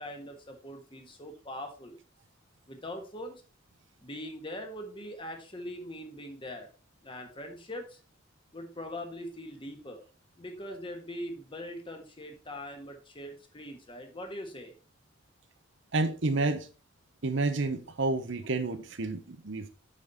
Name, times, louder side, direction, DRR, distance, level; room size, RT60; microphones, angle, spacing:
voice 1, 0.0-2.0 2.7-3.4 4.0-6.7 7.0-8.0 8.5-10.0 10.4-14.7, left 1 dB, 25° left, 1.5 m, -41 dB
voice 2, 15.9-16.6 17.2-19.7, right 3 dB, 65° right, 0.9 m, -29 dB
8.3 x 5.3 x 4.1 m
head